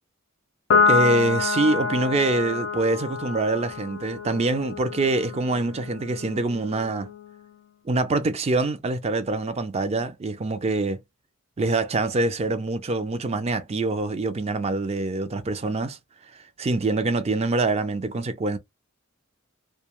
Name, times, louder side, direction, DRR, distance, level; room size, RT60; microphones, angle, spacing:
Piano, 0.7-7.4, left 4 dB, 60° left, 0.4 m, -27 dB
voice 1, 0.9-7.1 7.9-11.0 11.6-16.0 16.6-18.6, right 2 dB, 30° right, 0.4 m, -25 dB
2.2 x 2.2 x 2.9 m
head